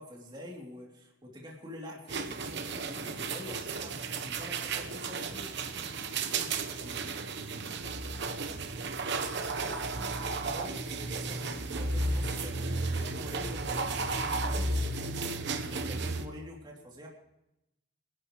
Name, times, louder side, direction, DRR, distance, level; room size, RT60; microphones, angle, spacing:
voice 1, 0.0-5.5 9.4-14.8 15.6-17.1, left 1 dB, 25° right, -2 dB, 3.0 m, -46 dB
sound 1, 2.1-16.3, right 3 dB, 60° right, 1.0 m, -33 dB
voice 2, 6.2-8.1 9.7-10.2, equal, 75° right, -1 dB, 3.3 m, -50 dB
26.5 x 11.5 x 3.2 m, 0.88 s
head